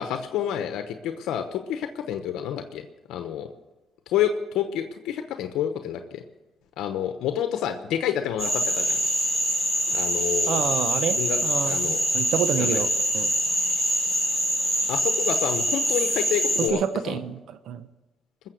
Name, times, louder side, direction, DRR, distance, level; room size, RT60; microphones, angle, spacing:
voice 1, 0.0-3.5 4.1-6.2 6.8-9.0 9.9-10.6 11.1-12.0 12.5-12.8 14.9-17.2, left 9 dB, 85° left, 8 dB, 0.9 m, -29 dB
Frog, 8.4-16.7, equal, ahead, 6.1 m, -24 dB
voice 2, 10.5-12.9 13.1-13.3 16.7-17.4 17.7-17.8, right 8 dB, 75° right, 12 dB, 0.8 m, -28 dB
20.0 x 7.5 x 7.8 m, 1.1 s
cardioid pair, 90°, 0 cm